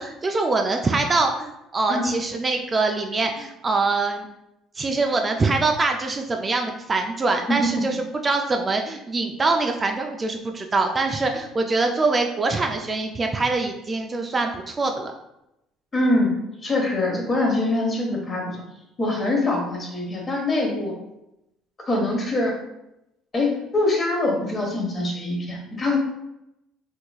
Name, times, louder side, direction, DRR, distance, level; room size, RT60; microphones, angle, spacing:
voice 1, 0.0-4.3 4.8-15.1, right 3 dB, 25° right, 3 dB, 0.3 m, -24 dB
voice 2, 15.9-16.3 16.6-18.6 19.0-20.9 21.9-22.5 23.3-26.0, left 2 dB, 30° left, 0 dB, 1.1 m, -23 dB
3.4 x 3.1 x 2.3 m, 0.86 s
cardioid pair, 100°, 0 cm